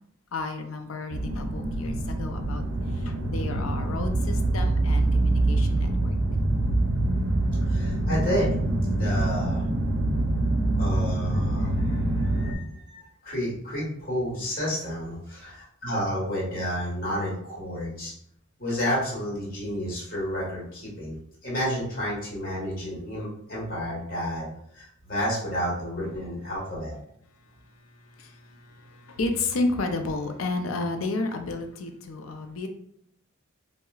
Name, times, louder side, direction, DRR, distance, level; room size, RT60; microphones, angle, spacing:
voice 1, 0.3-2.6 3.0-6.1 28.1-32.7, left 3 dB, 85° left, 6 dB, 0.5 m, -32 dB
sound 1, 1.1-12.5, right 2 dB, 75° right, 0.5 m, -25 dB
voice 2, 7.7-8.5 8.9-9.6 10.8-18.1 18.6-24.4 24.7-26.9, equal, 45° left, -5 dB, 1.3 m, -31 dB
4.6 x 2.1 x 2.3 m, 0.69 s
head